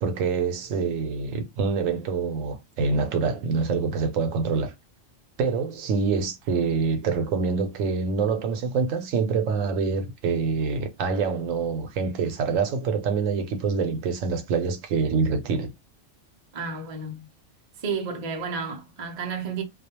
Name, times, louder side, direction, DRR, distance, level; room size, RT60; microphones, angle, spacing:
voice 1, 0.0-4.7 5.4-15.7, right 5 dB, 80° right, 1.0 m, -26 dB
voice 2, 16.5-17.3 17.8-19.6, right 5 dB, 50° right, 0.4 m, -31 dB
2.3 x 2.1 x 2.8 m
omnidirectional pair, 1.3 m